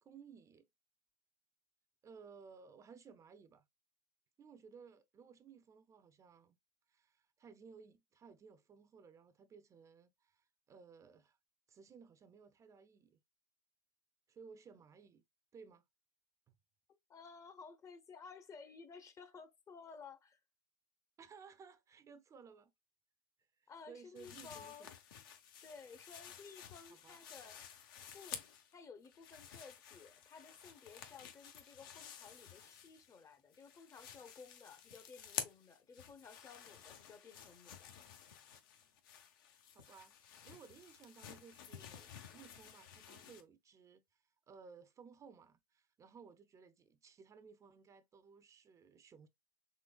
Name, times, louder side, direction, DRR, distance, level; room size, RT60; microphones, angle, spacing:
voice 1, 0.0-0.7 2.0-3.6 4.4-6.6 6.9-11.4 11.7-13.2 14.3-15.2 15.5-15.8 16.5-16.6 21.2-22.7 23.6-24.9 26.9-27.2 39.7-49.3, right 6 dB, 30° right, 0.4 m, -59 dB
voice 2, 17.1-20.4 23.7-24.9 25.6-27.8 28.1-28.4 28.7-37.9, left 5 dB, 30° left, 0.6 m, -55 dB
sound 1, 24.2-28.7 29.0-33.2 33.5-43.4, left 8 dB, 75° left, 0.7 m, -52 dB
3.8 x 3.1 x 2.2 m
supercardioid pair, 105°, 11 cm